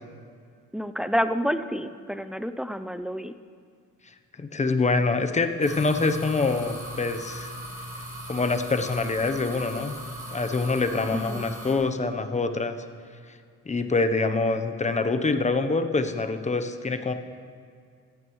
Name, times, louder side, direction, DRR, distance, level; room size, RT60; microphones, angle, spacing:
voice 1, 0.7-3.3 11.1-11.5, equal, ahead, 11 dB, 0.4 m, -29 dB
voice 2, 4.4-7.5 8.3-9.9 10.3-12.8 13.7-17.1, left 3 dB, 25° left, 8 dB, 0.8 m, -25 dB
sound 1, 5.6-11.7, equal, 30° right, 3.9 m, -38 dB
15.5 x 14.0 x 3.1 m, 2.2 s
cardioid pair, 90°, 30 cm